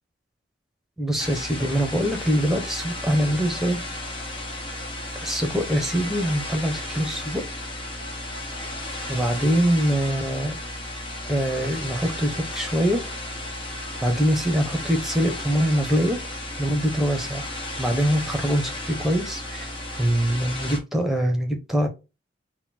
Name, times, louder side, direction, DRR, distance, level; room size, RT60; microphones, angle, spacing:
voice 1, 1.0-3.8 5.2-7.4 9.1-10.5 11.3-13.0 14.0-16.2 16.6-17.4 17.8-19.7 20.0-21.9, equal, ahead, 0.8 m, -23 dB
sound 1, 1.2-20.8, left 1 dB, 30° left, 1.0 m, -34 dB
4.1 x 2.3 x 4.2 m
head